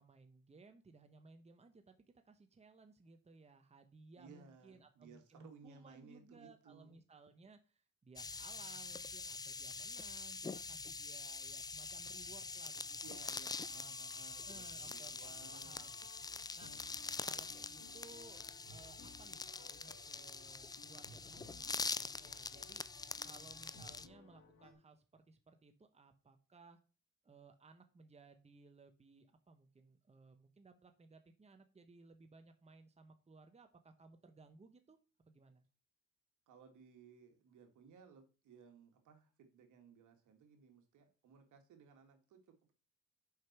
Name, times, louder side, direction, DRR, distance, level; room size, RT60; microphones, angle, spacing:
voice 1, 0.0-2.0 2.2-13.2 14.4-15.9 16.5-18.4 18.7-22.9 23.2-26.8 27.2-35.0 35.3-35.6, right 3 dB, 20° right, 7 dB, 1.1 m, -61 dB
voice 2, 4.2-7.0 13.0-15.9 36.5-42.7, right 5 dB, 75° right, 5 dB, 1.9 m, -60 dB
sound 1, 8.2-24.1, left 4 dB, 15° left, 0.3 m, -45 dB
Wind instrument woodwind instrument, 11.8-18.6, left 8 dB, 55° left, 1.2 m, -71 dB
sound 2, 15.3-24.7, left 3 dB, 80° left, 2.2 m, -61 dB
6.5 x 5.4 x 6.0 m, 0.35 s
cardioid pair, 90°, 30 cm